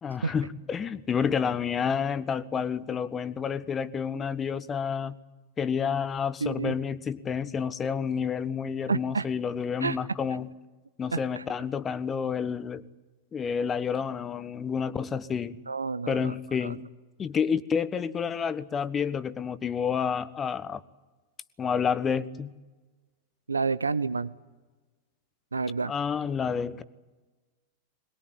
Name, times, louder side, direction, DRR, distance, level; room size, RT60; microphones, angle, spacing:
voice 1, 0.0-5.2 5.6-10.5 11.0-12.8 13.3-15.6 16.1-16.8 17.2-20.8 21.6-22.5 25.9-26.8, left 6 dB, 20° left, 15 dB, 1.1 m, -29 dB
voice 2, 6.4-6.7 8.9-9.2 9.8-10.0 11.1-11.4 15.7-16.3 16.6-16.8 23.5-24.3 25.5-25.9, right 4 dB, 75° right, 15 dB, 0.7 m, -29 dB
22.5 x 20.5 x 9.5 m, 1.2 s
figure-of-eight pair, 90°, 0 cm